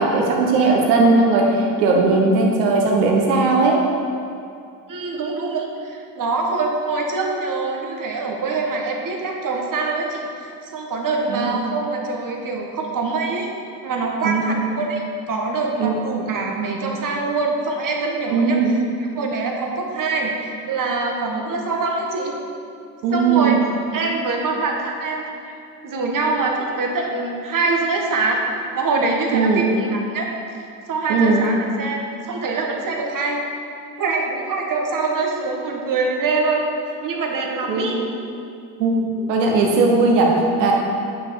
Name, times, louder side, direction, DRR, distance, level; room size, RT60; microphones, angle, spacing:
voice 1, 0.0-3.8 11.3-11.6 14.2-14.6 15.8-15.9 18.3-18.7 23.0-23.6 29.3-29.7 31.1-31.4 37.7-38.0 38.8-40.7, right 3 dB, 85° right, 0 dB, 1.3 m, -18 dB
voice 2, 4.9-13.5 13.8-18.6 19.2-22.3 23.1-23.6 23.9-25.6 25.8-28.4 28.7-30.3 30.9-33.4 34.0-36.6 37.0-38.0, right 3 dB, 40° right, 1 dB, 1.6 m, -24 dB
9.6 x 5.9 x 3.8 m, 2.4 s
hypercardioid pair, 60°, 48 cm